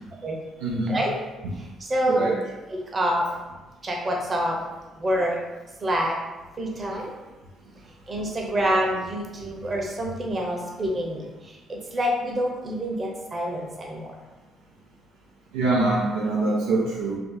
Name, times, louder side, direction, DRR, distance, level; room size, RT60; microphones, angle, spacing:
voice 1, 0.6-1.0 2.1-2.4 15.5-17.2, right 2 dB, 85° right, -4 dB, 0.5 m, -24 dB
voice 2, 1.6-2.3 2.7-3.3 3.8-4.6 5.0-5.4 5.8-6.2 6.6-7.1 8.1-14.1, equal, 35° right, -1 dB, 0.9 m, -27 dB
2.7 x 2.3 x 3.9 m, 1.1 s
hypercardioid pair, 55°, 0 cm